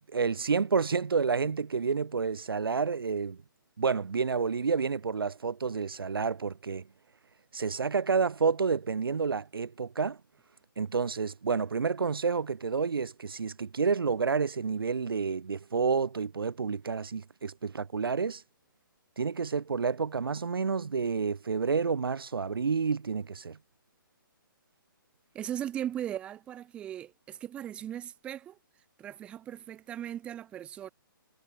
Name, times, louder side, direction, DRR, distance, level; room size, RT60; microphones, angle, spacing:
voice 1, 0.1-3.4 3.8-6.8 7.5-10.2 10.8-18.4 19.2-23.6, right 5 dB, 90° right, 4.0 m, -29 dB
voice 2, 25.3-28.6 29.0-30.9, right 11 dB, 10° right, 6.4 m, -38 dB
hypercardioid pair, 175°, 12 cm